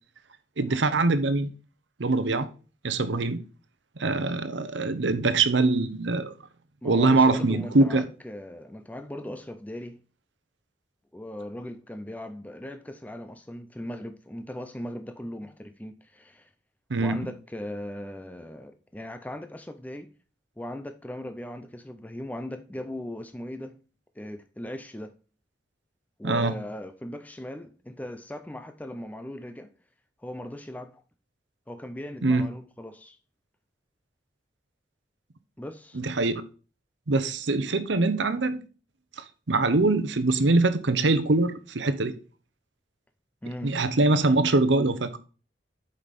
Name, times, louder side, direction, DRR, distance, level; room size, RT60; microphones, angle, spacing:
voice 1, 0.6-1.5 2.0-2.5 2.8-3.4 4.0-6.3 6.8-8.1 16.9-17.2 26.2-26.5 32.2-32.5 35.9-36.4 37.1-38.6 39.2-42.2 43.6-45.2, right 3 dB, 90° right, 0.8 m, -23 dB
voice 2, 6.8-10.0 11.1-16.5 17.0-20.1 20.6-23.8 24.2-25.1 26.2-29.7 30.2-31.0 31.7-33.2 35.6-36.0 43.4-43.7, left 1 dB, 10° left, 0.5 m, -38 dB
8.4 x 5.3 x 4.1 m
head